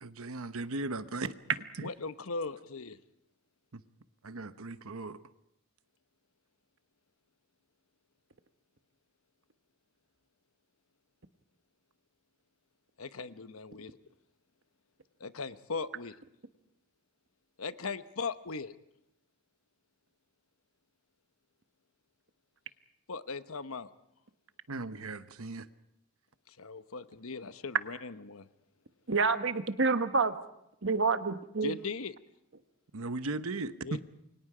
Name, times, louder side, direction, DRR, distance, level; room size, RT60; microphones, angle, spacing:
voice 1, 0.0-1.3 1.8-1.9 3.7-3.8 4.2-5.2 24.7-25.7 32.9-34.0, right 3 dB, 75° right, 1.0 m, -37 dB
voice 2, 1.8-3.0 13.0-14.0 15.2-16.2 17.6-18.7 23.1-23.9 26.5-28.5 31.6-32.1 33.8-34.0, left 4 dB, 70° left, 1.0 m, -39 dB
voice 3, 29.1-30.3 30.8-31.8, right 4 dB, 55° right, 1.3 m, -28 dB
29.0 x 24.0 x 5.0 m
head